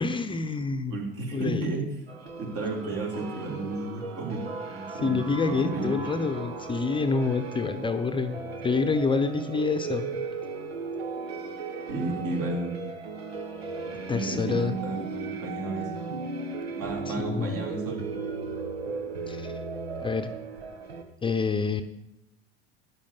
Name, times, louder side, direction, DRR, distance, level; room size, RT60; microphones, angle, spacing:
voice 1, 0.0-1.0 1.3-1.9 4.9-10.1 14.1-14.8 17.1-17.5 19.3-19.5 20.0-20.3 21.2-21.8, left 4 dB, 15° left, 8 dB, 0.9 m, -27 dB
voice 2, 0.9-1.9 2.4-5.9 11.9-12.8 14.0-15.9 16.8-18.0, right 2 dB, 50° right, -1 dB, 4.8 m, -33 dB
sound 1, 2.1-21.0, right 4 dB, 75° right, 1.7 m, -36 dB
14.0 x 10.0 x 5.5 m, 0.87 s
figure-of-eight pair, 80°, 31 cm